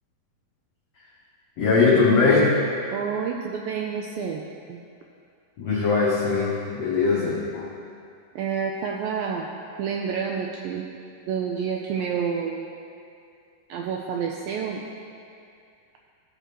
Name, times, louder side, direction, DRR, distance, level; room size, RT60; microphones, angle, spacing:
voice 1, 1.6-2.6 5.6-7.7, left 4 dB, 90° left, -6 dB, 1.4 m, -20 dB
voice 2, 2.9-4.4 4.7-4.8 8.4-9.5 9.8-10.9 11.3-12.7 13.7-14.8, right 6 dB, 85° right, 1 dB, 2.0 m, -29 dB
17.0 x 6.7 x 3.1 m, 2.4 s
omnidirectional pair, 4.6 m